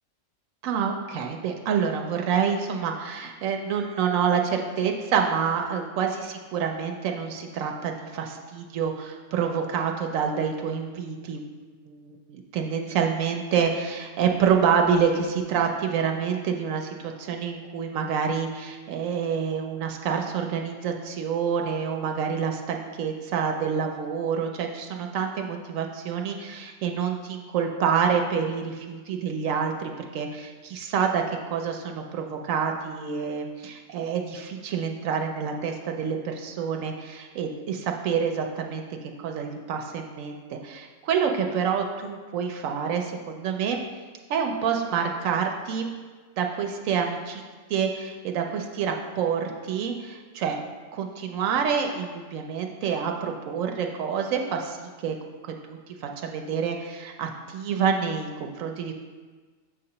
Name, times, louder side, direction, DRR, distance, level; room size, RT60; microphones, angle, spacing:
voice 1, 0.6-38.8 39.2-43.8 44.3-45.9 46.4-47.4 47.7-50.6 50.9-55.2 55.7-58.9, right 7 dB, 85° right, 3 dB, 1.0 m, -27 dB
7.2 x 2.9 x 5.4 m, 1.4 s
omnidirectional pair, 1.3 m